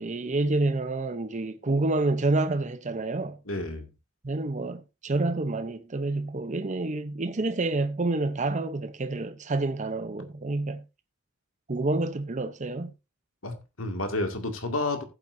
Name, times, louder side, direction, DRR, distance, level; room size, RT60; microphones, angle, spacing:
voice 1, 0.0-3.4 4.2-10.8 11.7-12.9, right 2 dB, 35° right, 0.7 m, -28 dB
voice 2, 3.5-3.9 13.4-15.0, left 2 dB, 70° left, 2.1 m, -30 dB
15.0 x 7.9 x 2.6 m
head